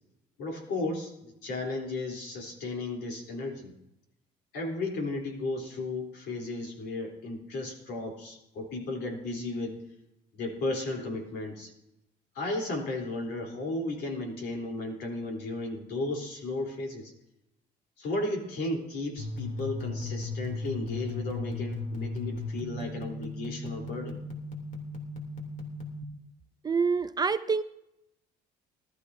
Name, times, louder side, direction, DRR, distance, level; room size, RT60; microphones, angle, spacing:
voice 1, 0.4-3.7 4.5-9.8 10.3-11.7 12.3-17.1 18.0-24.2, left 2 dB, 75° left, 0 dB, 3.7 m, -34 dB
sound 1, 19.2-26.0, left 3 dB, 50° left, 3.1 m, -36 dB
voice 2, 26.6-27.6, right 5 dB, 25° right, 11 dB, 0.5 m, -26 dB
20.0 x 13.0 x 2.8 m, 0.84 s
cardioid pair, 110°, 17 cm